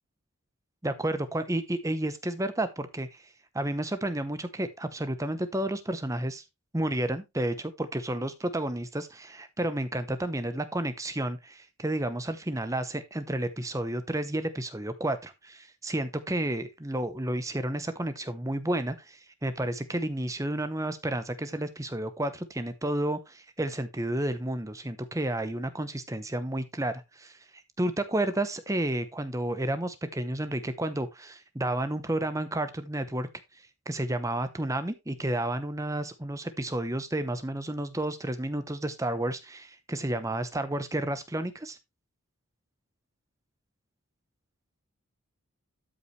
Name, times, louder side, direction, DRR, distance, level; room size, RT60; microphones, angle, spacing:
voice 1, 0.8-3.2 3.5-6.4 6.7-27.4 27.8-33.3 33.9-41.8, right 1 dB, 15° right, 0.8 m, -31 dB
12.5 x 5.6 x 3.2 m
head